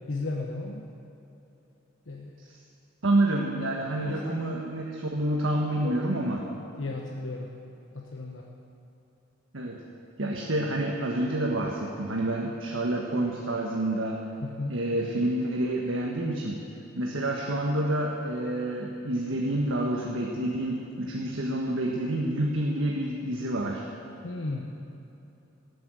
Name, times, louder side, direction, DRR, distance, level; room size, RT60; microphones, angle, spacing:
voice 1, 0.1-0.8 2.1-2.3 3.9-4.1 5.8-6.0 6.8-7.5 7.9-8.4 14.4-14.8 24.2-24.7, left 3 dB, 80° left, -1 dB, 1.1 m, -34 dB
voice 2, 3.0-6.4 9.5-9.8 10.2-14.2 14.7-16.6 16.9-23.8, right 1 dB, 85° right, -1 dB, 1.4 m, -28 dB
18.0 x 8.8 x 7.6 m, 2.9 s
head